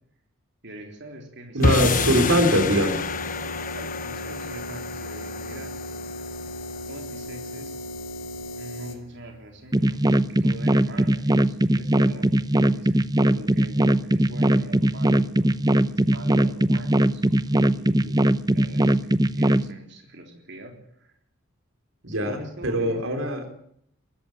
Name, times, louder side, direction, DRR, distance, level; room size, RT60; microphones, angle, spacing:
voice 1, 0.6-1.6 2.1-2.3 3.4-5.8 6.9-7.8 8.5-18.2 18.5-21.1 22.2-23.5, right 1 dB, 60° right, 3 dB, 3.6 m, -43 dB
voice 2, 1.5-3.0 22.0-23.5, equal, 90° right, 7 dB, 4.0 m, -22 dB
sound 1, 1.6-9.0, left 1 dB, 80° left, 3.1 m, -36 dB
sound 2, 1.6-8.0, left 4 dB, 40° left, 0.9 m, -29 dB
sound 3, 9.7-19.7, right 1 dB, 20° right, 0.7 m, -20 dB
21.5 x 14.0 x 8.8 m, 0.68 s
head